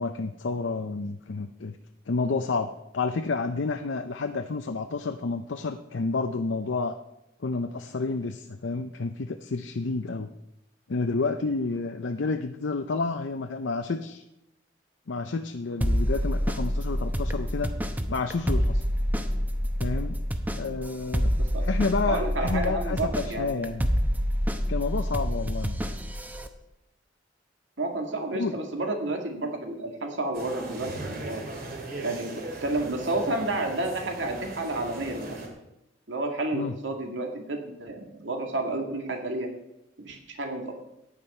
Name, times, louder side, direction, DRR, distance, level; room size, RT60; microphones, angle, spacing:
voice 1, 0.0-1.8 2.1-7.0 7.4-10.3 10.9-14.2 15.1-17.7 18.1-18.8 19.8-20.2 20.6-21.3 21.6-23.9 24.7-25.8 28.3-28.5 36.5-36.7, left 3 dB, 85° left, 6 dB, 0.6 m, -30 dB
sound 1, 15.8-26.5, equal, 10° right, 0.9 m, -27 dB
voice 2, 22.0-23.7 27.8-31.4 32.0-35.4 36.1-39.5 40.0-40.8, right 2 dB, 80° right, 3 dB, 2.2 m, -31 dB
sound 2, 30.3-35.5, right 2 dB, 55° right, 2.6 m, -38 dB
15.0 x 9.8 x 4.4 m, 0.87 s
head